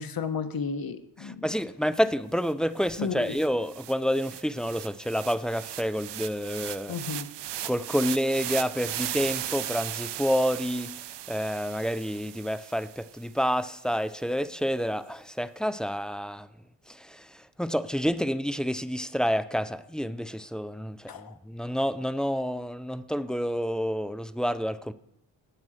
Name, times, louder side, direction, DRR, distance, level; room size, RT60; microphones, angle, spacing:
voice 1, 0.0-1.4 3.0-3.2 6.9-7.3 21.1-21.3, left 5 dB, 50° left, 1.2 m, -32 dB
voice 2, 1.2-7.0 7.6-10.9 11.3-16.5 16.9-24.9, equal, ahead, 0.5 m, -29 dB
sound 1, 2.5-2.6 2.8-13.2, right 12 dB, 65° right, 0.6 m, -37 dB
17.5 x 6.1 x 4.9 m
cardioid pair, 60°, 46 cm